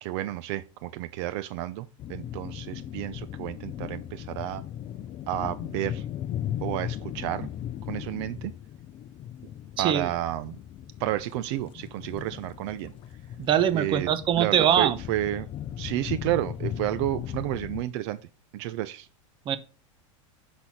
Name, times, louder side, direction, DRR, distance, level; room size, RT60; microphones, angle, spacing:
voice 1, 0.0-4.6 5.3-6.1 6.6-7.5 7.8-8.5 9.8-10.6 11.0-12.9 13.7-14.1 14.4-15.5 15.8-18.2 18.5-19.1, right 14 dB, 60° right, 0.6 m, -31 dB
sound 1, 2.0-17.8, left 10 dB, 35° left, 0.7 m, -37 dB
voice 2, 9.8-10.1 13.4-15.0 19.5-19.6, right 9 dB, 30° right, 0.9 m, -23 dB
8.1 x 6.1 x 4.2 m
supercardioid pair, 140°, 16 cm